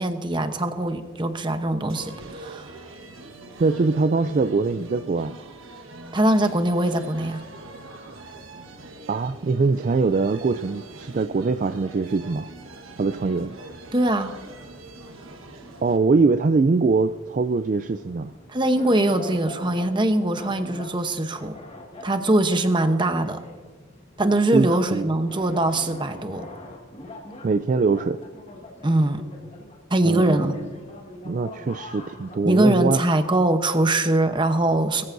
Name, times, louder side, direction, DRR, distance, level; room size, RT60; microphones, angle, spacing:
voice 1, 0.0-2.8 6.1-7.4 13.9-14.4 18.5-21.6 22.0-23.4 24.2-26.5 28.8-29.2 29.9-30.6 32.4-35.0, right 1 dB, 25° right, 8 dB, 0.9 m, -22 dB
sound 1, 1.9-16.0, right 2 dB, 80° right, 1.4 m, -43 dB
voice 2, 3.6-5.3 9.1-12.5 13.0-13.5 15.8-18.3 24.5-25.1 27.4-28.2 30.0-30.7 31.2-33.0, right 4 dB, 40° right, 10 dB, 0.3 m, -22 dB
sound 2, 13.1-32.4, left 1 dB, 30° left, 1.6 m, -44 dB
21.5 x 14.5 x 2.7 m, 1.5 s
head